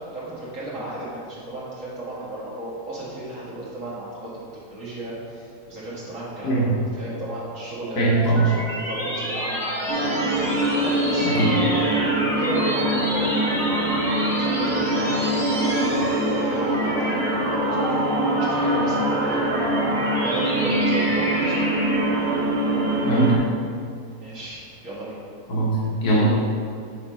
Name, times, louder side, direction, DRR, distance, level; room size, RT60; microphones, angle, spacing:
voice 1, 0.1-10.1 10.8-12.0 12.3-13.7 14.4-18.0 18.4-19.7 20.2-21.9 24.2-25.2, right 1 dB, 55° right, -8 dB, 2.2 m, -34 dB
voice 2, 6.4-6.8 8.0-8.6 11.2-11.5 23.0-23.4 25.5-26.3, right 2 dB, 85° left, -6 dB, 1.7 m, -20 dB
sound 1, 7.7-22.4, equal, ahead, 0.9 m, -29 dB
sound 2, 9.9-23.4, right 1 dB, 70° right, 1.6 m, -24 dB
5.6 x 4.3 x 5.4 m, 2.3 s
omnidirectional pair, 1.7 m